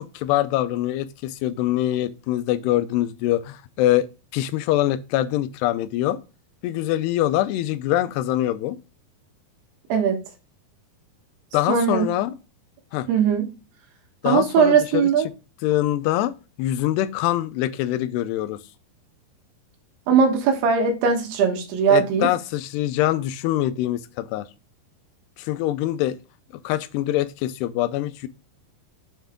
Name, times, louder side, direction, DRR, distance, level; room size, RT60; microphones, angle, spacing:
voice 1, 0.0-4.1 4.3-6.2 6.6-8.8 11.5-12.4 12.9-13.1 14.2-15.1 15.6-16.3 16.6-18.6 21.9-24.5 25.4-26.2 26.6-28.3, left 14 dB, 90° left, 2.7 m, -24 dB
voice 2, 11.7-12.1 13.1-13.5 14.3-15.3 20.1-22.3, right 6 dB, 75° right, 3.5 m, -19 dB
7.2 x 5.7 x 3.6 m
omnidirectional pair, 4.7 m